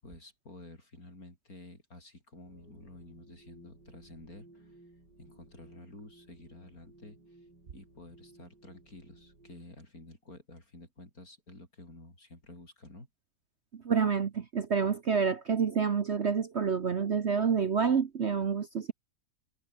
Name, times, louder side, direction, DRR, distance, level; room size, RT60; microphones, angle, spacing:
voice 1, 0.0-4.8 5.2-13.1, left 2 dB, 55° left, 7.6 m, -51 dB
sound 1, 2.4-9.6, right 2 dB, 80° right, 7.6 m, -58 dB
voice 2, 13.8-18.9, right 6 dB, 45° right, 1.2 m, -28 dB
omnidirectional pair, 1.8 m